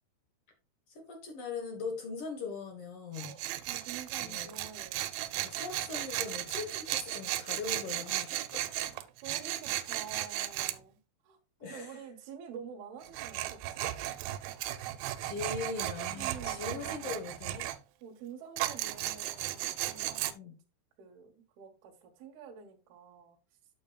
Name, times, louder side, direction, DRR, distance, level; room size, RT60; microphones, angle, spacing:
voice 1, 0.9-3.3 4.2-4.5 5.4-8.7 11.6-12.0 15.2-17.7 20.3-20.5, left 5 dB, 70° left, 1.4 m, -40 dB
voice 2, 3.1-5.2 8.0-8.3 9.2-11.0 11.2-13.9 16.1-17.3 18.0-20.5 21.0-23.4, right 7 dB, 75° right, 3.0 m, -48 dB
Tools, 3.1-10.8 13.0-17.8 18.6-20.3, right 14 dB, 90° right, 2.6 m, -36 dB
10.5 x 6.9 x 2.3 m
omnidirectional pair, 4.6 m